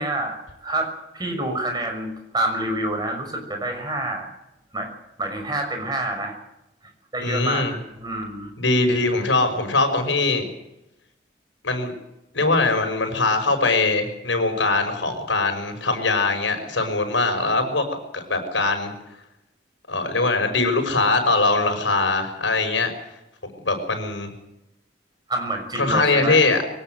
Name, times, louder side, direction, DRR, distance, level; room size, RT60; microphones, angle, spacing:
voice 1, 0.0-4.3 4.7-4.9 5.2-6.3 7.1-7.6 8.0-8.5 25.3-26.4, right 1 dB, 20° right, 4 dB, 6.0 m, -27 dB
voice 2, 7.2-7.7 8.6-10.5 11.6-11.9 12.3-17.8 18.1-18.9 19.9-22.9 23.6-24.3 25.8-26.6, left 3 dB, 80° left, 6 dB, 5.6 m, -21 dB
23.0 x 18.0 x 7.9 m, 0.88 s
head